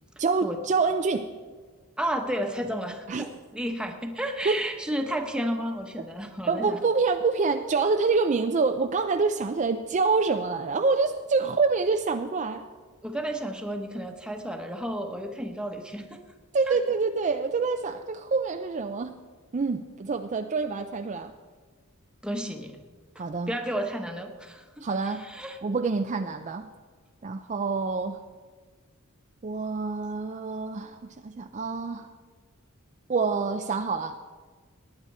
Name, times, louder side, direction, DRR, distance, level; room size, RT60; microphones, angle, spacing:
voice 1, 0.2-1.3 3.1-3.3 4.4-4.6 6.5-12.7 16.5-19.1 19.5-21.3 23.2-23.5 24.8-25.3 25.6-26.7 27.2-28.2 29.4-32.1 33.1-34.2, right 4 dB, 35° right, 6 dB, 0.4 m, -26 dB
voice 2, 2.0-6.8 13.0-16.2 16.7-16.8 22.2-22.8 23.1-24.7 25.0-25.6, equal, 5° right, 3 dB, 1.1 m, -32 dB
19.0 x 9.7 x 4.3 m, 1.5 s
head